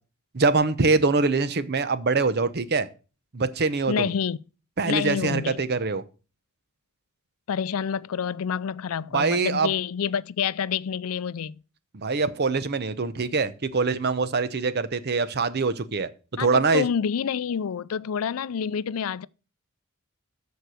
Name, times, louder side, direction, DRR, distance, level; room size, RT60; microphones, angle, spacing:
voice 1, 0.3-2.9 3.3-4.1 4.8-6.0 9.1-9.7 11.9-16.1 16.4-16.8, right 4 dB, 50° right, 0.8 m, -24 dB
voice 2, 3.9-4.4 4.9-5.6 7.5-11.6 16.4-19.3, left 7 dB, 80° left, 0.4 m, -28 dB
13.5 x 4.6 x 6.4 m
head